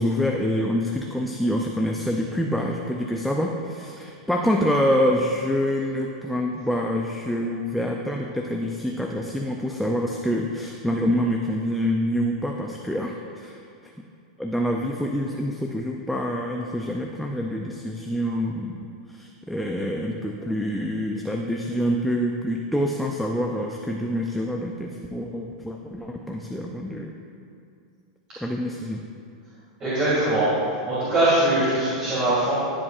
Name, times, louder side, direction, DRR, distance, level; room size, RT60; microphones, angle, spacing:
voice 1, 0.0-13.5 13.8-13.9 14.4-27.1 28.4-29.0, equal, ahead, 1 dB, 0.4 m, -26 dB
voice 2, 29.8-30.5 30.9-32.5, right 1 dB, 25° right, -9 dB, 2.2 m, -21 dB
13.5 x 7.6 x 2.5 m, 2.5 s
supercardioid pair, 160°, 4 cm